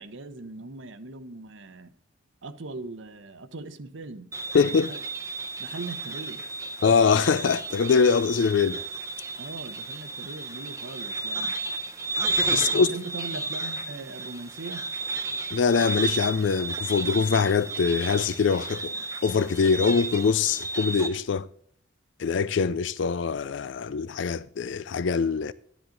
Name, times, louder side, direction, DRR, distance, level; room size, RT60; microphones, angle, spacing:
voice 1, 0.0-1.9 2.4-4.3 4.6-5.0 5.6-6.6 9.4-11.6 12.5-14.8, right 3 dB, 80° right, 0.9 m, -40 dB
sound 1, 4.3-21.1, right 3 dB, 15° right, 0.7 m, -33 dB
voice 2, 4.5-4.9 6.8-8.8 12.5-12.9 15.5-18.9 19.2-21.5 22.2-25.5, left 5 dB, 75° left, 0.4 m, -23 dB
12.0 x 10.0 x 3.9 m
head